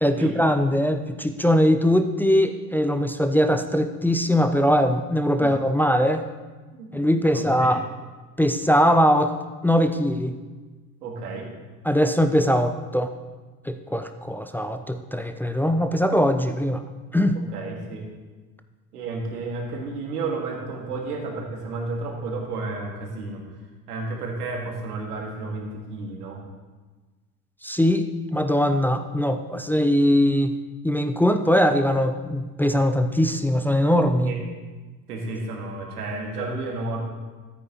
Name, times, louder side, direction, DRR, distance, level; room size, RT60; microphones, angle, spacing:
voice 1, 0.0-6.2 6.9-7.8 8.4-9.3 9.6-10.4 11.9-13.1 13.7-16.8 17.1-17.4 27.6-30.5 30.8-34.3, equal, 5° left, 7 dB, 0.5 m, -21 dB
voice 2, 7.3-7.7 11.0-11.5 17.3-18.1 18.9-23.4 23.9-26.4 34.2-34.4 35.1-37.0, right 3 dB, 85° right, 0 dB, 2.0 m, -32 dB
13.5 x 9.0 x 3.0 m, 1.3 s
hypercardioid pair, 70°, 46 cm